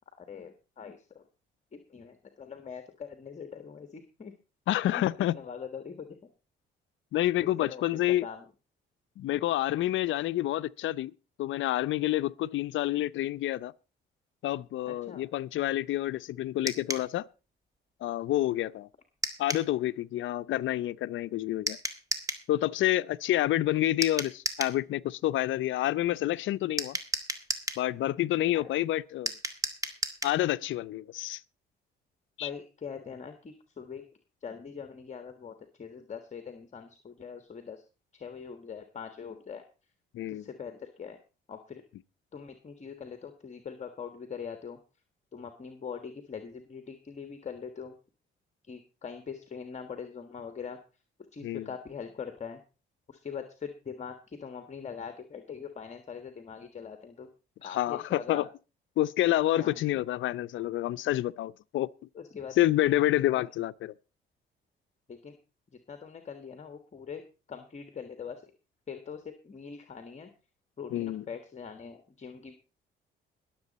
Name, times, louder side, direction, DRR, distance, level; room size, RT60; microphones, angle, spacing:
voice 1, 0.2-1.2 1.7-4.3 4.9-5.1 5.3-6.2 7.4-7.8 8.2-8.4 14.9-15.2 28.5-28.6 32.4-34.0 34.4-37.8 38.1-39.6 40.3-41.2 41.5-41.8 42.3-44.8 45.3-47.9 48.7-50.8 51.3-52.6 53.1-57.3 57.6-58.4 59.6-60.0 62.1-62.5 63.3-63.5 65.1-65.4 65.9-67.2 67.5-68.4 68.9-70.3 70.8-72.5, left 6 dB, 35° left, 1.6 m, -42 dB
voice 2, 4.7-5.4 7.1-8.2 9.2-11.1 11.4-13.7 14.4-17.2 18.0-18.9 19.4-21.8 22.5-27.0 27.8-29.3 30.2-31.4 32.4-32.5 40.1-40.4 51.4-51.7 57.6-58.5 59.0-61.9 62.6-63.9 70.9-71.2, left 14 dB, 75° left, 0.6 m, -28 dB
sound 1, 16.7-17.1 19.2-19.7 21.7-22.5 24.0-24.8 26.8-27.8 29.3-30.4, right 1 dB, 15° right, 1.8 m, -33 dB
22.0 x 7.6 x 4.2 m
cardioid pair, 90°, 20 cm